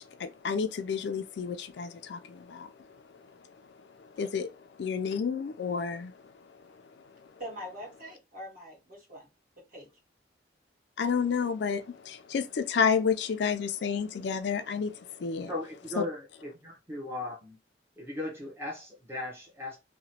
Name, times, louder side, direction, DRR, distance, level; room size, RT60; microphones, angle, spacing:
voice 1, 0.0-2.7 4.0-4.5 4.8-6.2 11.0-15.5, left 6 dB, 65° left, 0.3 m, -30 dB
voice 2, 7.4-9.3 9.7-9.9, equal, 45° right, 1.6 m, -43 dB
voice 3, 15.5-17.6 18.0-19.8, left 2 dB, 15° right, 0.7 m, -37 dB
2.9 x 2.1 x 2.8 m
head